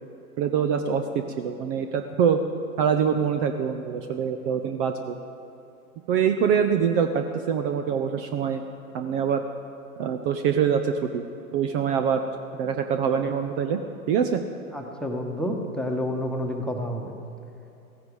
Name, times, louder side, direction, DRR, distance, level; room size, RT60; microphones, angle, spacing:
voice 1, 0.4-1.0 1.4-2.4 2.8-5.2 6.1-8.6 8.9-9.4 10.0-11.2 11.5-12.2 12.6-13.8 14.1-14.4, right 7 dB, 35° right, 7 dB, 0.8 m, -24 dB
voice 2, 14.7-17.1, left 1 dB, ahead, 1 dB, 1.4 m, -29 dB
16.0 x 14.5 x 4.9 m, 2.8 s
hypercardioid pair, 110°, 45 cm